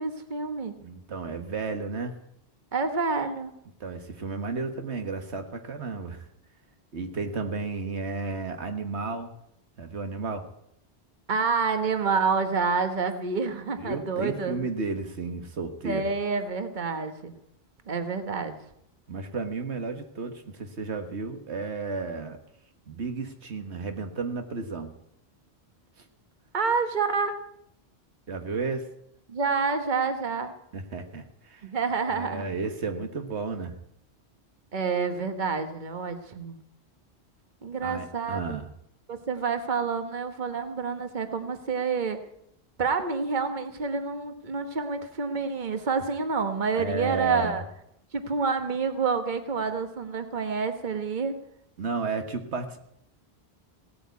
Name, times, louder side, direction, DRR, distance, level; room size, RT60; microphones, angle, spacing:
voice 1, 0.0-0.7 2.7-3.5 11.3-14.6 15.8-17.3 17.9-18.5 26.5-27.4 29.3-30.5 31.6-32.4 34.7-36.6 37.6-38.6 39.1-42.2 42.8-47.6 48.1-51.3, right 5 dB, 45° right, 8 dB, 1.4 m, -28 dB
voice 2, 0.8-2.2 3.8-6.3 6.9-9.3 9.8-10.5 13.8-16.0 19.1-22.4 22.9-24.9 28.3-28.9 30.7-31.7 32.1-33.7 37.8-38.7 46.7-47.6 51.8-52.8, right 4 dB, 85° right, 6 dB, 1.7 m, -33 dB
17.0 x 8.7 x 9.4 m, 0.75 s
omnidirectional pair, 1.1 m